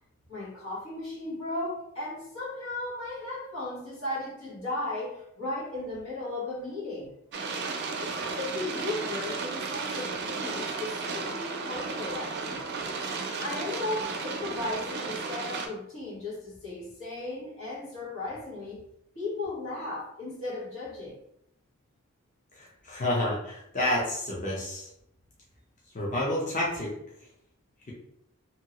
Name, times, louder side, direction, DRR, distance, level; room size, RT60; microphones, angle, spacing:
voice 1, 0.3-7.1 8.0-12.6 13.4-18.8 19.1-21.2, left 2 dB, 85° left, -7 dB, 1.5 m, -36 dB
sound 1, 7.3-15.7, right 4 dB, 55° right, 0.4 m, -34 dB
voice 2, 22.6-24.9 25.9-26.9, left 1 dB, 35° left, -5 dB, 0.7 m, -29 dB
2.8 x 2.7 x 2.9 m, 0.75 s
head